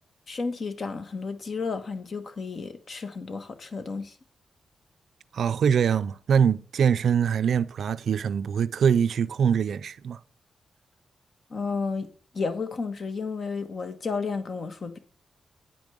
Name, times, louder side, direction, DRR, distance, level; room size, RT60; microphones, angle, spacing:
voice 1, 0.3-4.1 11.5-12.1 12.3-15.0, left 4 dB, 55° left, 1.3 m, -32 dB
voice 2, 5.3-10.2, right 7 dB, 75° right, 0.3 m, -23 dB
9.0 x 5.2 x 6.2 m
cardioid pair, 85°, 0 cm